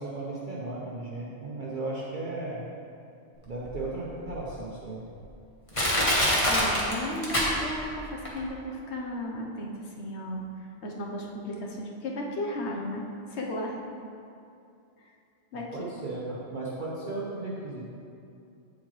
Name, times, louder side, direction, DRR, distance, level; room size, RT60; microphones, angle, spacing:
voice 1, 0.0-2.6 3.5-5.0 15.5-17.8, right 2 dB, 45° right, -6 dB, 1.0 m, -35 dB
Crushing, 3.7-3.8 4.4-4.5 5.2-5.3 5.7-7.9 8.3-8.4, equal, 30° left, 1.4 m, -24 dB
voice 2, 6.5-10.4 10.8-13.0 13.3-13.8 15.5-15.9, left 1 dB, 65° left, 0 dB, 1.2 m, -34 dB
8.6 x 7.7 x 3.2 m, 2.6 s
omnidirectional pair, 1.2 m